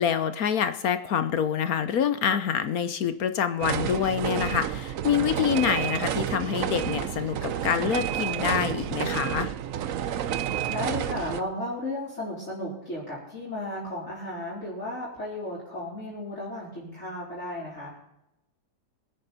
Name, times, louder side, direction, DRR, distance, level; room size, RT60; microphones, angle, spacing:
voice 1, 0.0-9.5, left 8 dB, 60° left, 11 dB, 1.2 m, -26 dB
sound 1, 3.6-11.4, right 10 dB, 60° right, 0.9 m, -30 dB
voice 2, 10.7-18.0, left 1 dB, 40° left, -8 dB, 4.4 m, -34 dB
22.0 x 9.2 x 4.1 m, 0.84 s
omnidirectional pair, 1.9 m